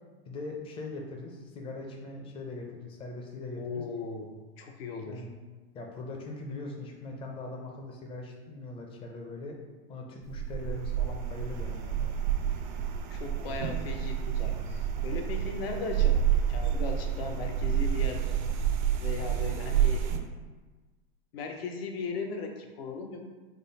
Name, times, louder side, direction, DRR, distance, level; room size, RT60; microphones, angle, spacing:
voice 1, 0.3-3.8 5.0-5.3 5.7-9.6 9.9-12.2, left 2 dB, 20° left, 1 dB, 0.4 m, -41 dB
voice 2, 3.6-4.3 4.6-5.3 12.7-12.8 13.1-18.3 19.0-20.0 21.3-23.2, left 4 dB, 75° left, 3 dB, 0.7 m, -37 dB
sound 1, 10.2-20.2, right 9 dB, 50° right, 0.4 m, -29 dB
3.7 x 2.0 x 3.9 m, 1.3 s
hypercardioid pair, 130°, 31 cm